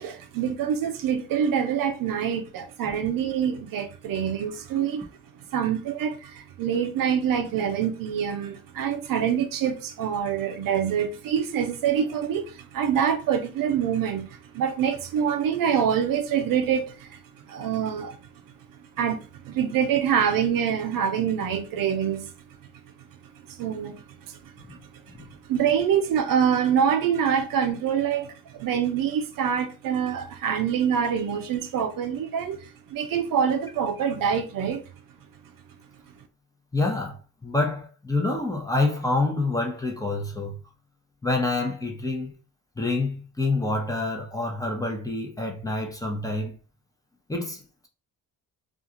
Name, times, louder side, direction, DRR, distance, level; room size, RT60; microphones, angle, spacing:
voice 1, 0.0-5.1 5.5-17.2 17.5-18.2 19.0-22.3 23.5-24.8 25.2-34.8, right 8 dB, 60° right, 0.5 m, -25 dB
voice 2, 36.7-40.6 41.2-42.3 42.8-46.5 47.3-47.9, left 2 dB, 10° left, 0.7 m, -27 dB
2.4 x 2.3 x 2.8 m
supercardioid pair, 70°, 38 cm